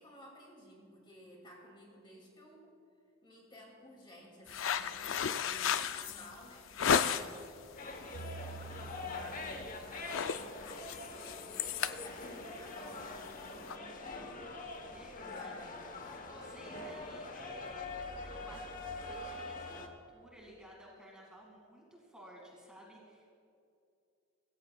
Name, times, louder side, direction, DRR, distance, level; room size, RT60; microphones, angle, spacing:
voice 1, 0.0-2.7 3.2-7.4 7.8-13.9 15.2-16.2, equal, 25° left, -1 dB, 2.4 m, -55 dB
sound 1, 4.5-7.5 7.9-8.3 8.6-8.8 9.2-9.6 9.8-13.7, left 7 dB, 70° left, 0.4 m, -34 dB
sound 2, 7.8-19.9, left 3 dB, 40° left, 1.0 m, -44 dB
sound 3, 8.1-10.5, right 4 dB, 85° right, 0.5 m, -48 dB
voice 2, 11.0-11.7 14.9-15.6 16.3-23.3, equal, 5° right, -3 dB, 2.2 m, -55 dB
24.5 x 14.5 x 2.3 m, 2.5 s
head